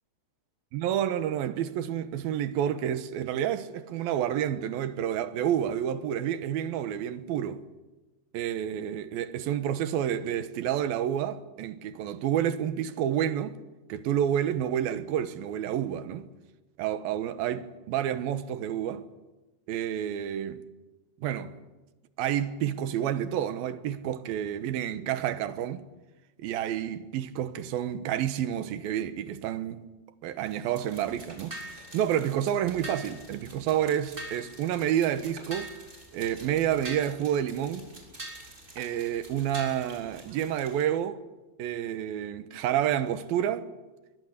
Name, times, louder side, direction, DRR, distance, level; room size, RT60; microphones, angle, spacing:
voice 1, 0.7-7.6 8.3-13.6 13.9-16.3 16.8-19.1 19.7-20.6 21.2-21.6 22.2-25.8 26.4-29.8 30.2-35.7 36.1-37.9 38.8-41.2 41.6-43.7, right 10 dB, 70° right, 2.5 m, -29 dB
sound 1, 30.4-40.8, right 1 dB, 15° right, 6.3 m, -45 dB
24.0 x 23.5 x 8.3 m
omnidirectional pair, 5.5 m